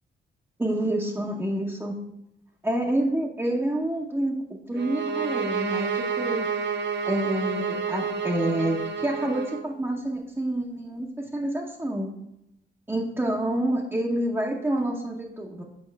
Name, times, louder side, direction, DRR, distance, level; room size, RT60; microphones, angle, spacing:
voice 1, 0.6-2.0 2.6-4.4 4.7-6.5 7.0-12.1 12.9-15.6, right 1 dB, 10° right, -2 dB, 0.9 m, -28 dB
sound 1, 4.8-9.7, right 5 dB, 55° right, 0.6 m, -29 dB
7.7 x 5.2 x 3.4 m, 0.86 s
cardioid pair, 85°, 21 cm